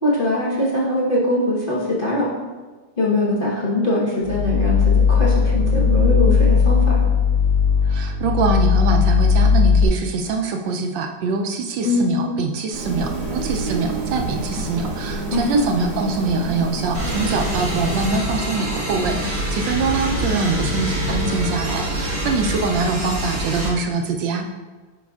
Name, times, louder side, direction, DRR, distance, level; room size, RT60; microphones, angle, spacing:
voice 1, 0.0-2.3 3.0-7.0 11.8-12.3 15.3-15.6, left 1 dB, 35° left, -8 dB, 1.1 m, -21 dB
sound 1, 4.2-9.8, left 6 dB, 75° left, 1.2 m, -17 dB
voice 2, 7.8-24.5, right 4 dB, 75° right, 3 dB, 1.2 m, -24 dB
sound 2, 12.7-18.1, right 2 dB, 55° right, 1.8 m, -28 dB
sound 3, 16.9-23.7, equal, 30° right, 2.3 m, -25 dB
9.1 x 5.2 x 2.4 m, 1.3 s
omnidirectional pair, 2.2 m